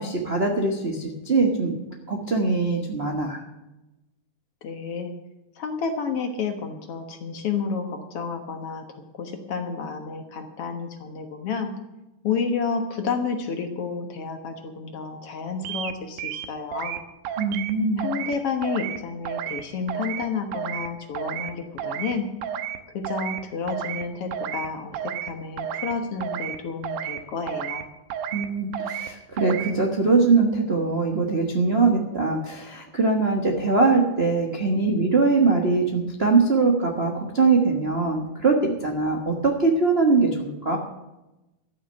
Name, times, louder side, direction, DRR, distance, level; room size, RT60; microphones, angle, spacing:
voice 1, 0.0-1.8 2.1-3.4 17.4-18.1 28.3-40.8, right 4 dB, 50° right, 0 dB, 0.7 m, -22 dB
voice 2, 4.6-5.1 5.6-11.7 12.2-17.0 18.0-22.3 22.9-27.9, left 5 dB, 55° left, 5 dB, 1.9 m, -30 dB
sound 1, 15.7-15.9 16.2-17.0 17.3-17.7 18.0-18.4 18.6-19.0 19.3-19.6 19.9-20.2 20.5-20.9 21.2-21.5 21.8-22.1 22.4-22.8 23.0-23.4 23.7-24.0 24.3-24.7 24.9-25.3 25.6-25.9 26.2-26.6 26.8-27.2 27.5-27.8 28.1-28.5 28.7-29.1 29.4-29.7, right 9 dB, 90° right, 2.4 m, -31 dB
13.5 x 6.6 x 9.5 m, 0.99 s
omnidirectional pair, 3.6 m